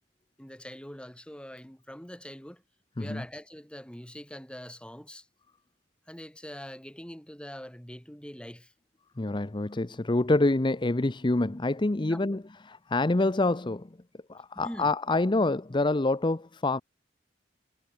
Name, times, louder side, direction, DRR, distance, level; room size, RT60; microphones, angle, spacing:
voice 1, 0.4-2.6 3.0-5.3 6.1-8.7 12.1-12.2 14.5-14.9, equal, 5° left, 2.8 m, -43 dB
voice 2, 9.2-14.0 14.3-16.8, left 2 dB, 25° left, 0.7 m, -26 dB
head